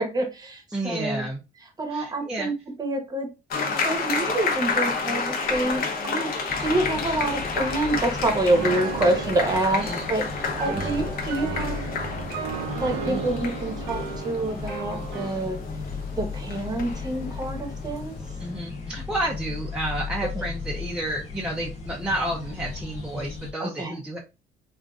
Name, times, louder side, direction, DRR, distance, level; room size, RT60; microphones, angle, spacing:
voice 1, 0.0-1.2 1.8-2.5 2.8-3.3 3.8-10.3 10.6-11.8 12.6-15.6 16.1-18.1 20.3-20.4 23.6-23.9, right 2 dB, 25° right, 5 dB, 0.9 m, -27 dB
voice 2, 0.7-1.4 1.9-2.5 9.8-10.1 10.6-11.0 13.0-13.3 18.4-24.2, right 1 dB, 5° right, -2 dB, 0.5 m, -31 dB
sound 1, 3.5-18.4, left 4 dB, 60° left, 0.8 m, -31 dB
sound 2, 6.5-23.5, left 4 dB, 40° left, 1.0 m, -36 dB
Piano, 8.5-15.4, right 6 dB, 85° right, 0.7 m, -34 dB
3.8 x 2.5 x 2.3 m, 0.28 s
cardioid pair, 110°, 17 cm